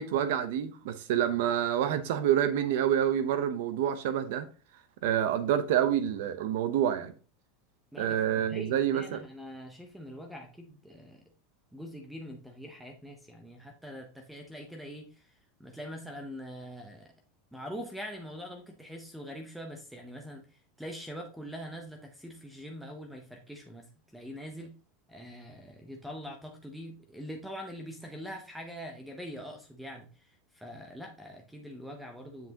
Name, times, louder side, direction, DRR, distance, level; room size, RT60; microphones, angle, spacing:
voice 1, 0.0-4.5 5.0-7.1 8.0-9.2, right 10 dB, 60° right, 0.7 m, -27 dB
voice 2, 7.9-11.2 11.7-15.3 15.6-17.1 17.5-20.5 20.8-23.9 24.1-24.7 25.1-30.1 30.5-32.5, equal, ahead, 0.7 m, -43 dB
7.3 x 5.8 x 2.8 m
supercardioid pair, 175°, 0 cm